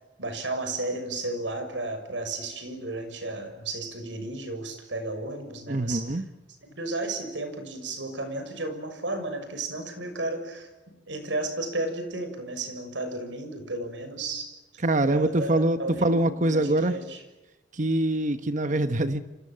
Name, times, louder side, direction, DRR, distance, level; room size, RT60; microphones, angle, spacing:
voice 1, 0.2-6.1 6.7-10.7 11.1-14.8 15.1-17.2, right 2 dB, 90° right, 8 dB, 6.5 m, -33 dB
voice 2, 5.7-6.2 14.8-17.0 17.7-19.2, right 1 dB, 45° right, 10 dB, 1.1 m, -24 dB
30.0 x 25.5 x 7.6 m, 1.1 s
head